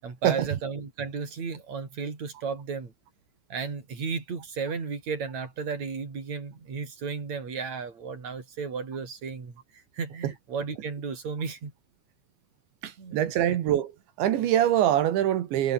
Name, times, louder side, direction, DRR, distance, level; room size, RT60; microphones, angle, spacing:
voice 1, 0.0-2.9 3.5-11.7 13.0-13.6, right 5 dB, 40° right, 6.1 m, -34 dB
voice 2, 12.8-13.9 14.2-15.7, right 11 dB, 85° right, 4.3 m, -24 dB
omnidirectional pair, 5.1 m